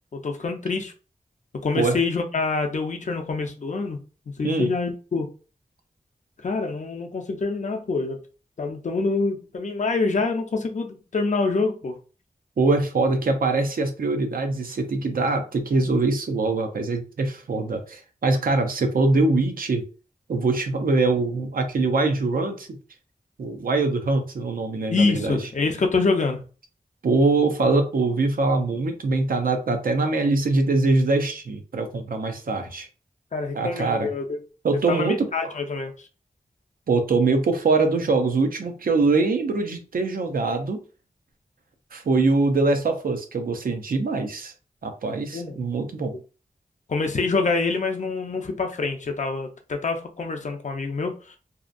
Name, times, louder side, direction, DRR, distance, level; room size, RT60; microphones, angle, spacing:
voice 1, 0.1-0.9 1.6-4.0 4.4-5.3 6.4-8.2 8.6-12.0 24.9-26.4 33.3-34.4 34.7-36.1 45.3-45.6 46.9-51.4, left 4 dB, 55° left, 0.5 m, -26 dB
voice 2, 12.6-19.9 20.3-22.8 23.4-25.4 27.0-32.9 33.5-34.1 34.6-35.5 36.9-40.8 41.9-44.5 44.8-46.2, right 3 dB, 75° right, 0.5 m, -23 dB
2.7 x 2.2 x 2.5 m
wide cardioid pair, 85°, 15 cm